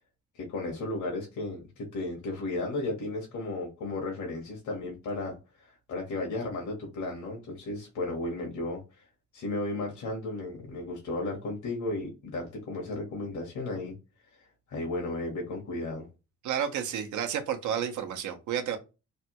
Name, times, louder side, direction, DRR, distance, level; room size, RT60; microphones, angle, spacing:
voice 1, 0.3-9.0 9.3-14.0 14.3-16.1, left 2 dB, 75° left, 1.2 m, -34 dB
voice 2, 16.4-18.8, right 9 dB, 75° right, 0.8 m, -31 dB
3.3 x 2.2 x 2.9 m
cardioid pair, 90°, 30 cm